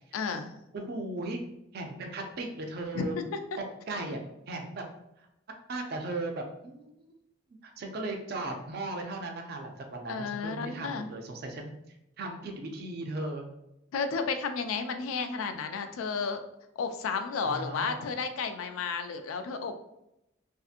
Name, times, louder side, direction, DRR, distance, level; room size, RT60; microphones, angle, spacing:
voice 1, 0.1-0.5 2.9-3.4 10.1-11.1 13.9-16.4 16.8-19.8, left 5 dB, 85° left, 7 dB, 0.3 m, -32 dB
voice 2, 0.7-1.4 1.7-3.2 3.6-4.2 4.5-4.8 5.2-5.3 5.7-7.1 7.6-11.7 12.2-13.5 17.4-18.0, right 2 dB, 50° right, 3 dB, 0.4 m, -37 dB
2.6 x 2.5 x 2.4 m, 0.85 s
head